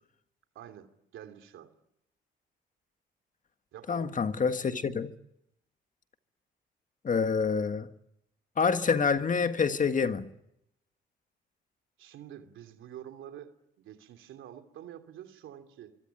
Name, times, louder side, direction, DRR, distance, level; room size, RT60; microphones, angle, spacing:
voice 1, 0.5-1.7 3.7-4.2 12.0-16.0, right 10 dB, 85° right, 2.9 m, -47 dB
voice 2, 3.9-5.1 7.0-7.9 8.6-10.3, left 5 dB, 40° left, 1.7 m, -27 dB
24.5 x 24.0 x 9.0 m
cardioid pair, 90°, 20 cm